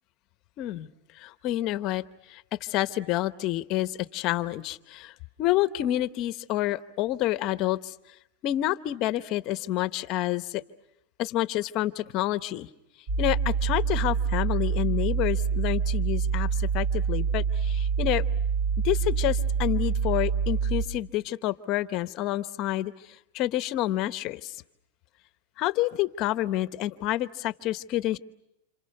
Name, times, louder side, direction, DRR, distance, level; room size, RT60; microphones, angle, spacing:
voice 1, 0.6-0.9 1.1-7.9 8.4-10.6 11.2-12.7 13.2-18.2 18.8-22.9 23.3-24.6 25.6-28.2, left 15 dB, 35° left, 12 dB, 0.9 m, -28 dB
sound 1, 13.1-20.9, right 6 dB, 45° right, 3.9 m, -26 dB
29.5 x 27.5 x 6.6 m, 0.84 s
supercardioid pair, 150°, 0 cm